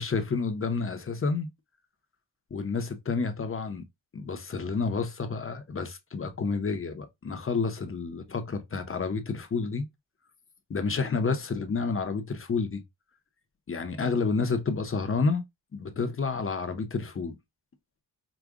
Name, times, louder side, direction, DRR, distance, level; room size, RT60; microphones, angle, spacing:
voice 1, 0.0-1.5 2.5-3.8 4.1-9.9 10.7-12.8 13.7-15.4 15.7-17.4, left 4 dB, 30° left, 0.7 m, -29 dB
5.0 x 2.2 x 3.5 m
wide cardioid pair, 130°, 42 cm